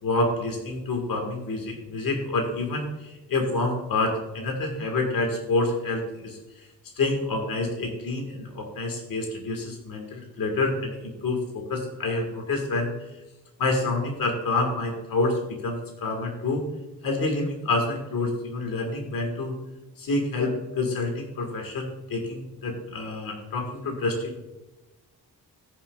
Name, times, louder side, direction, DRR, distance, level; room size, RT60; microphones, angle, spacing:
voice 1, 0.0-6.4 7.0-12.9 13.6-16.6 17.0-19.5 20.0-24.4, left 2 dB, 70° left, 2 dB, 1.8 m, -28 dB
15.0 x 7.1 x 2.4 m, 1.1 s
wide cardioid pair, 170°, 36 cm